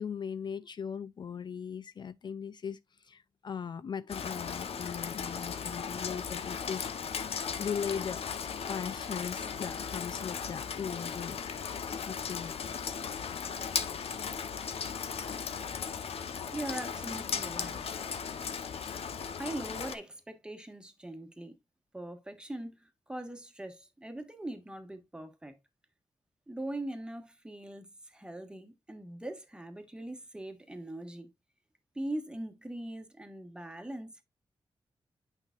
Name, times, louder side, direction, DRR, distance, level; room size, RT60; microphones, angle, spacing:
voice 1, 0.0-6.9 7.3-8.2 8.7-11.6 12.1-12.8, left 7 dB, 50° left, 0.4 m, -39 dB
Rain, 4.1-19.9, left 6 dB, 85° left, 0.9 m, -37 dB
voice 2, 16.5-17.9 19.4-21.5 21.9-25.6 26.5-31.3 31.9-34.2, right 1 dB, 10° right, 1.4 m, -41 dB
8.9 x 5.6 x 2.4 m
wide cardioid pair, 165°, 10 cm